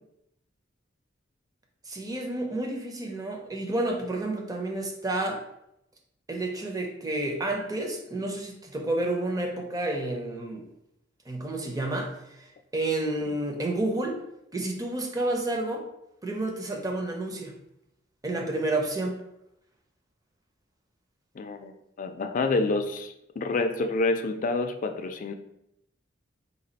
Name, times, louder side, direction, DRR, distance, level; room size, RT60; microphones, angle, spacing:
voice 1, 1.9-5.4 6.3-10.6 11.3-12.1 12.4-14.2 14.5-15.8 16.2-17.5 18.2-19.2, right 2 dB, 20° right, 2 dB, 0.6 m, -30 dB
voice 2, 21.4-25.3, left 3 dB, 45° left, 6 dB, 0.4 m, -28 dB
4.1 x 2.3 x 3.9 m, 0.82 s
head